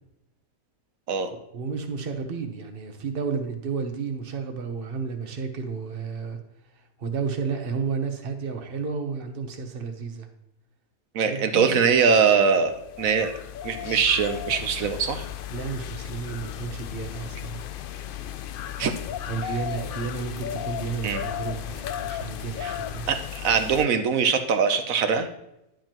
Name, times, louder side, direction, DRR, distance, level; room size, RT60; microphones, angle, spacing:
voice 1, 1.3-6.4 7.0-10.3 11.3-11.9 15.5-17.6 19.3-23.0, right 5 dB, 45° right, 6 dB, 1.1 m, -32 dB
voice 2, 11.1-13.3 13.6-15.3 18.8-18.9 21.0-21.2 22.6-22.7 23.1-25.3, right 6 dB, 75° right, 8 dB, 1.2 m, -22 dB
sound 1, 12.7-23.9, left 10 dB, 80° left, 0.4 m, -35 dB
11.0 x 7.5 x 3.0 m, 0.86 s
omnidirectional pair, 1.5 m